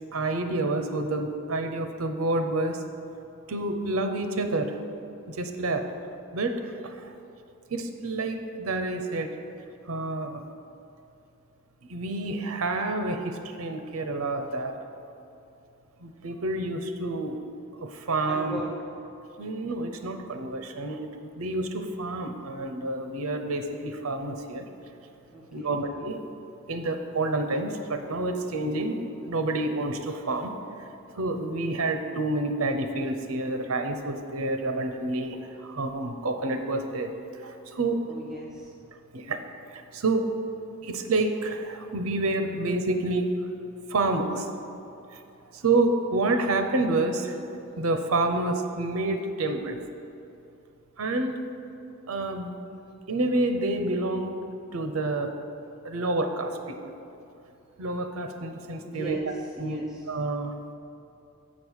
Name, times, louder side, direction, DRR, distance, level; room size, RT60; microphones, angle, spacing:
voice 1, 0.1-2.8 3.5-4.8 5.3-5.8 6.3-7.1 7.7-9.3 9.9-10.4 11.9-14.7 16.0-17.4 17.8-18.6 19.4-21.1 21.4-24.6 25.5-26.2 26.7-29.0 29.2-30.5 31.1-37.1 37.4-38.0 39.1-39.4 39.7-40.3 40.8-43.3 43.9-44.5 45.1-45.2 45.5-47.4 47.8-49.8 51.0-51.4 52.1-52.5 53.1-54.4 54.7-55.3 55.8-56.8 57.8-59.2 59.6-59.8 60.1-60.5, right 2 dB, 80° right, 6 dB, 0.7 m, -28 dB
voice 2, 18.3-18.8 25.3-25.8 38.1-38.7 58.8-60.1, right 1 dB, ahead, -4 dB, 0.6 m, -38 dB
7.5 x 5.3 x 6.3 m, 2.7 s
head